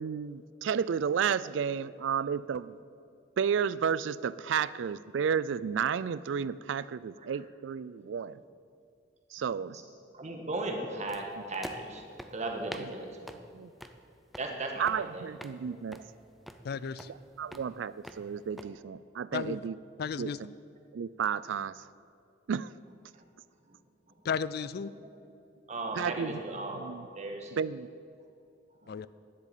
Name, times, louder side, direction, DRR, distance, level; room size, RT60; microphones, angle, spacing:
voice 1, 0.0-2.8 3.4-8.4 9.3-9.8 12.8-12.9 13.5-13.7 14.8-16.0 17.1-19.8 20.2-20.5 20.9-21.9 22.5-22.7 25.9-26.4 26.7-27.1 27.5-27.9, right 7 dB, 75° right, 18 dB, 0.4 m, -32 dB
voice 2, 10.1-13.3 14.4-15.3 23.1-23.2 23.7-23.8 25.0-25.1 25.7-26.9 27.2-27.5 28.8-28.9, right 2 dB, 40° right, 2 dB, 1.6 m, -37 dB
sound 1, 11.1-18.7, equal, ahead, 0.5 m, -48 dB
voice 3, 16.6-17.1 19.3-19.6 20.0-20.4 24.2-24.9 28.9-29.1, left 6 dB, 55° left, 17 dB, 0.4 m, -33 dB
10.5 x 7.9 x 9.1 m, 2.4 s
head